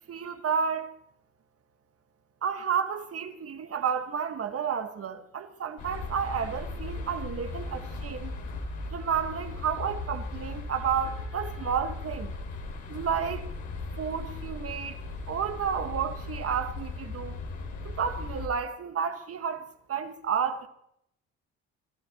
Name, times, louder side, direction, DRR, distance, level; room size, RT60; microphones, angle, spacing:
voice 1, 0.1-0.9 2.4-8.4 8.9-12.3 12.9-13.5 14.0-15.0 15.3-17.4 17.8-20.7, right 7 dB, 50° right, 1.6 m, -31 dB
sound 1, 5.8-18.5, left 3 dB, 65° left, 3.5 m, -37 dB
29.5 x 13.0 x 3.0 m
hypercardioid pair, 60°, 31 cm